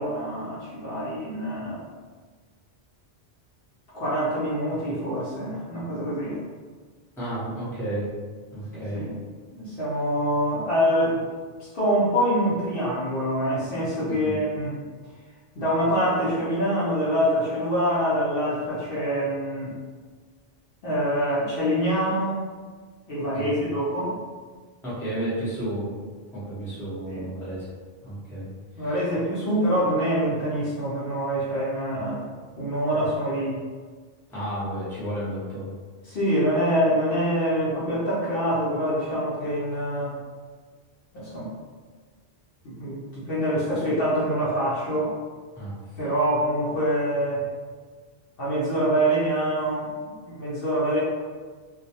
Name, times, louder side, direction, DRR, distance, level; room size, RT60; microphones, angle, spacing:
voice 1, 0.0-1.8 3.9-6.4 8.7-9.2 9.5-11.2 11.6-14.8 15.6-19.8 20.8-22.4 23.1-24.2 27.1-27.3 28.8-32.3 32.6-33.6 36.0-40.1 41.1-41.5 42.6-45.1 46.0-47.4 48.4-49.9 50.2-51.0, equal, 60° left, -8 dB, 0.7 m, -25 dB
voice 2, 7.2-8.1 8.5-9.0 14.1-14.4 23.3-23.5 24.8-25.9 26.3-27.7 28.0-28.5 34.3-35.7 45.6-45.7, right 1 dB, 5° left, -10 dB, 0.6 m, -32 dB
2.2 x 2.1 x 2.7 m, 1.5 s
omnidirectional pair, 1.2 m